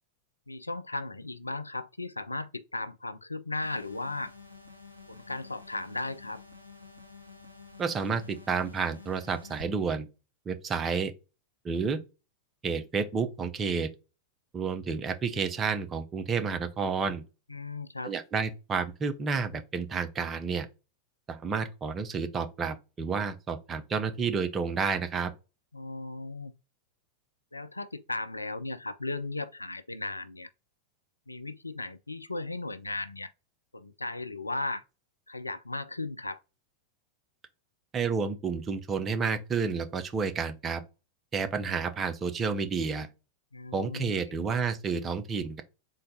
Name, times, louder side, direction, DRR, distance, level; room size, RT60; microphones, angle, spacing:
voice 1, 0.5-4.3 5.1-6.4 17.5-18.1 25.7-26.5 27.5-30.5 31.3-33.3 33.7-34.8 35.3-36.4 43.5-44.2, left 2 dB, 85° left, 0.3 m, -36 dB
sound 1, 3.6-9.6, left 4 dB, 85° right, 0.6 m, -50 dB
voice 2, 7.8-10.1 10.5-11.1 11.6-12.0 12.6-13.9 14.5-17.2 18.0-20.7 21.3-25.3 37.9-40.8 41.3-43.1 43.7-45.6, right 5 dB, 25° right, 0.5 m, -30 dB
3.8 x 2.2 x 3.8 m
figure-of-eight pair, 90°, 0 cm